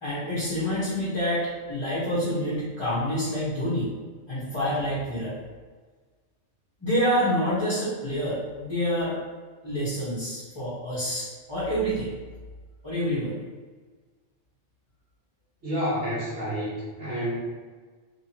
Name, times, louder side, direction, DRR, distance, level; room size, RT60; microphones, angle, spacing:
voice 1, 0.0-3.9 4.3-5.4 6.8-9.2 9.6-12.1 12.8-13.4, equal, 25° left, -12 dB, 1.3 m, -27 dB
voice 2, 15.6-17.4, equal, 70° right, -11 dB, 1.9 m, -29 dB
3.6 x 3.4 x 2.9 m, 1.4 s
omnidirectional pair, 1.2 m